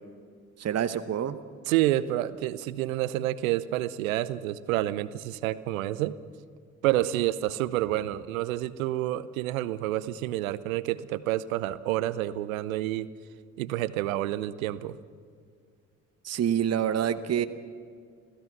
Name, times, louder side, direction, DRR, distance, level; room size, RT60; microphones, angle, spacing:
voice 1, 0.6-1.4 16.2-17.5, right 9 dB, 35° right, 11 dB, 1.0 m, -27 dB
voice 2, 1.7-6.2 6.8-13.1 13.6-15.0, right 14 dB, 75° right, 17 dB, 0.8 m, -28 dB
27.0 x 16.0 x 6.0 m, 2.1 s
figure-of-eight pair, 45°, 42 cm